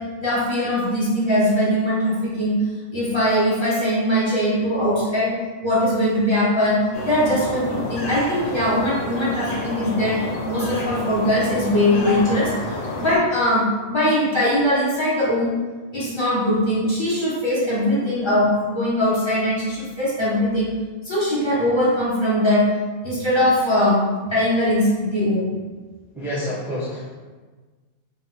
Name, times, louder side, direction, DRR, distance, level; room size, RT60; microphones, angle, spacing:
voice 1, 0.2-2.6 2.9-5.3 5.6-10.2 10.4-12.5 13.0-15.5 15.9-20.7 21.0-22.6 23.0-24.0 24.3-25.5, left 1 dB, 25° left, -10 dB, 1.5 m, -21 dB
sound 1, 6.9-13.2, left 1 dB, 75° left, 1.1 m, -30 dB
voice 2, 26.1-27.1, equal, ahead, -9 dB, 0.5 m, -28 dB
4.1 x 2.1 x 4.0 m, 1.3 s
omnidirectional pair, 1.2 m